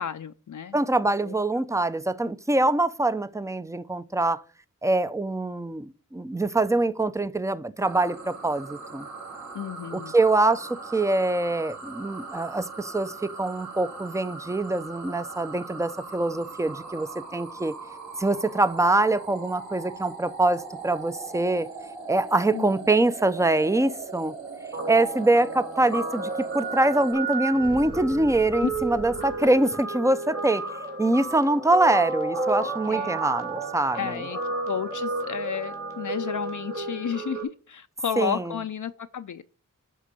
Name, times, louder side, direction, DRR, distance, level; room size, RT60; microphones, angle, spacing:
voice 1, 0.0-0.8 1.2-1.6 9.5-10.1 22.5-22.7 28.6-28.7 32.9-33.2 33.9-34.4 34.7-39.4, left 8 dB, 65° left, 0.5 m, -32 dB
voice 2, 0.7-4.4 4.8-9.1 9.9-17.7 18.2-21.7 22.1-24.3 24.9-30.7 31.0-34.2 38.2-38.5, right 2 dB, 10° right, 0.6 m, -24 dB
sound 1, 7.8-27.1, right 4 dB, 60° right, 3.2 m, -40 dB
Guitar, 24.7-37.4, right 3 dB, 45° right, 2.7 m, -32 dB
sound 2, 27.5-29.7, left 2 dB, 15° left, 0.9 m, -43 dB
11.0 x 3.7 x 6.8 m
wide cardioid pair, 85°, 33 cm